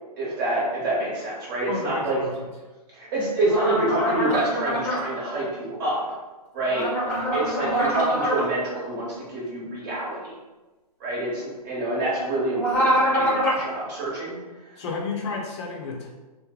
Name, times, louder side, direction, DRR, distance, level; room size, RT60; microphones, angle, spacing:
voice 1, 0.2-2.2 2.9-6.2 6.5-6.8 7.3-10.3 11.0-14.3 14.8-14.9, right 2 dB, 30° right, -6 dB, 1.3 m, -27 dB
voice 2, 1.7-2.4 14.8-16.1, left 4 dB, 40° left, 0 dB, 0.7 m, -31 dB
sound 1, 3.5-5.0 6.7-8.4 12.5-13.6, equal, 10° left, 0.9 m, -24 dB
3.1 x 2.1 x 3.7 m, 1.2 s
hypercardioid pair, 145°, 21 cm